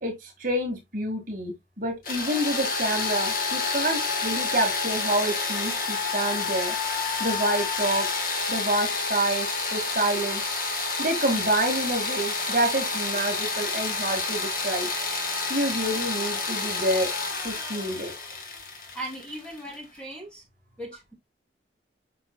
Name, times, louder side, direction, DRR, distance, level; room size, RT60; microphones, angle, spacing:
voice 1, 0.0-6.7 7.2-8.1 8.5-10.4 11.0-14.9 15.5-17.1 17.4-18.1, right 1 dB, 45° right, 2.0 m, -28 dB
sound 1, 2.0-19.8, left 4 dB, 50° left, 1.3 m, -29 dB
voice 2, 18.9-20.4 20.8-21.1, right 1 dB, 5° left, 2.8 m, -38 dB
7.5 x 5.9 x 2.2 m
head